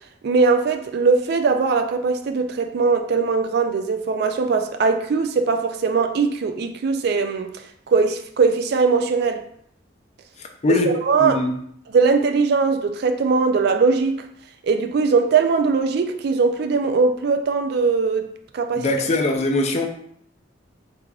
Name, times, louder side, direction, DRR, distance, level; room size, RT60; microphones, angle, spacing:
voice 1, 0.2-7.5 7.9-9.4 10.7-11.4 11.9-14.2 14.6-18.3 18.5-18.9, right 4 dB, 60° right, 0.3 m, -20 dB
voice 2, 10.6-10.9 11.2-11.5 18.8-19.9, left 2 dB, 35° left, 0.4 m, -21 dB
3.6 x 3.4 x 2.3 m
head